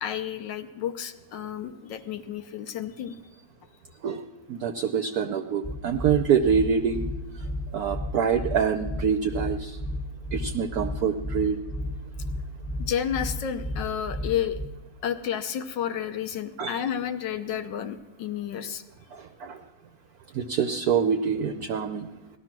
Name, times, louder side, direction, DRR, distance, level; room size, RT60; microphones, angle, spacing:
voice 1, 0.0-3.1 12.8-14.6 15.0-18.8, left 9 dB, 70° left, 9 dB, 1.3 m, -31 dB
voice 2, 4.5-7.0 7.7-9.8 10.3-11.6 16.6-16.8 19.1-19.6 20.3-22.1, right 7 dB, 65° right, 8 dB, 0.9 m, -25 dB
sound 1, 5.6-14.7, left 1 dB, 20° left, 1.5 m, -33 dB
18.5 x 13.0 x 6.0 m, 1.1 s
omnidirectional pair, 2.2 m